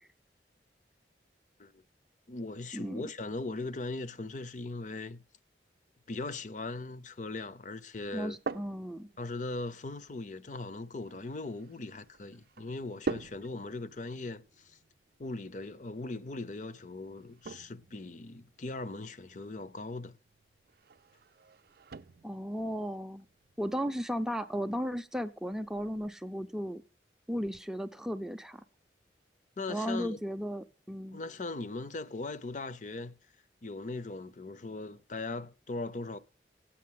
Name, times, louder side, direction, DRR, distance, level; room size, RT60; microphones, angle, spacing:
voice 1, 2.3-5.2 6.1-8.4 9.2-14.8 15.2-20.2 29.6-30.2 31.1-33.1 33.6-36.2, left 2 dB, 45° left, 0.6 m, -39 dB
sound 1, 8.0-26.1, right 3 dB, 55° right, 0.5 m, -46 dB
voice 2, 8.1-9.1 22.2-23.3 23.6-26.8 27.3-28.6 29.7-31.2, equal, 5° right, 0.5 m, -35 dB
8.9 x 8.5 x 7.6 m
head